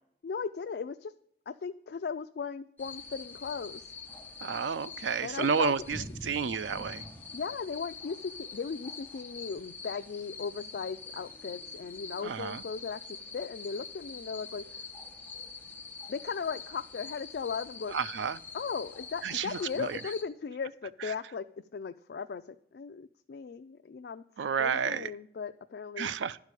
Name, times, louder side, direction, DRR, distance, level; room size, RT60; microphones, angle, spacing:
voice 1, 0.2-1.1 1.5-3.9 5.2-5.7 7.3-14.6 16.1-18.0 18.5-21.4 21.7-24.2 24.6-26.1, left 5 dB, 60° left, 0.3 m, -37 dB
sound 1, 2.8-20.2, left 4 dB, 10° left, 1.0 m, -45 dB
voice 2, 4.4-7.0 12.2-12.6 17.9-18.4 19.2-20.0 21.0-21.1 24.4-25.1 26.0-26.4, right 6 dB, 90° right, 0.4 m, -31 dB
11.0 x 4.8 x 8.1 m
head